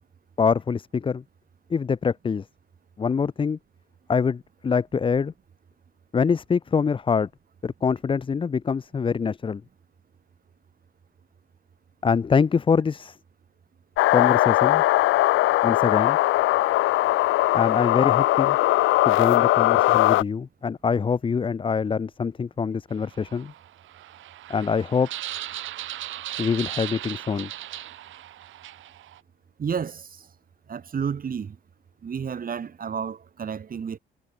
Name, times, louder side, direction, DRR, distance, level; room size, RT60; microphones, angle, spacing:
voice 1, 0.4-1.2 1.7-2.4 3.0-3.6 4.1-5.3 6.1-7.3 7.6-9.6 12.0-13.2 14.1-14.8 15.6-16.2 17.5-18.6 19.1-23.5 24.5-25.1 26.4-27.5, left 6 dB, 25° left, 0.5 m, -24 dB
sound 1, 14.0-20.2, left 17 dB, 85° left, 0.6 m, -20 dB
sound 2, 22.9-29.2, right 13 dB, 75° right, 2.1 m, -37 dB
voice 2, 29.6-30.3 30.7-31.6 32.0-34.0, right 7 dB, 45° right, 3.0 m, -31 dB
cardioid pair, 90°, 20 cm